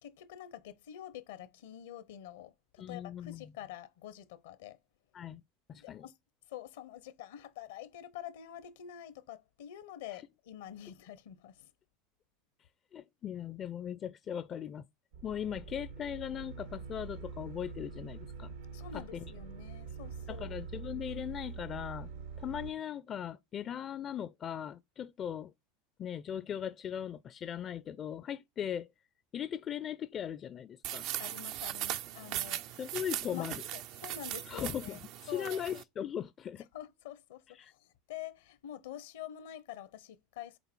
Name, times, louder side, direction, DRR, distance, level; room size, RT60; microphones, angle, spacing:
voice 1, 0.0-4.8 5.7-6.1 6.5-11.7 18.7-20.6 31.2-32.9 33.3-35.0 35.3-35.6 36.7-40.6, left 11 dB, 75° left, 0.9 m, -47 dB
voice 2, 2.8-3.5 5.1-5.4 5.7-6.1 12.9-14.8 15.2-18.5 18.9-19.3 20.3-22.1 22.4-25.5 26.0-28.9 29.3-31.1 32.8-33.6 34.5-36.7 37.6-37.7, left 9 dB, 35° left, 0.4 m, -39 dB
sound 1, 15.1-22.7, right 5 dB, 85° right, 1.5 m, -45 dB
sound 2, 30.8-35.8, right 13 dB, 60° right, 0.5 m, -39 dB
6.8 x 4.0 x 4.5 m
hypercardioid pair, 95°, 0 cm